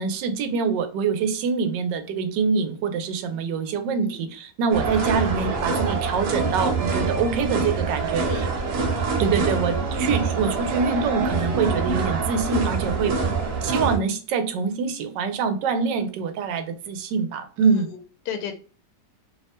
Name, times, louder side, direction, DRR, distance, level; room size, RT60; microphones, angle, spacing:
voice 1, 0.0-8.5 9.2-13.2 13.6-17.9, right 5 dB, 85° right, 8 dB, 1.2 m, -25 dB
sound 1, 4.7-14.0, right 4 dB, 65° right, 1.3 m, -25 dB
voice 2, 8.3-8.6 9.1-9.4 13.1-13.4 17.6-18.5, left 7 dB, 80° left, 6 dB, 1.2 m, -35 dB
3.1 x 2.1 x 2.7 m, 0.39 s
omnidirectional pair, 1.9 m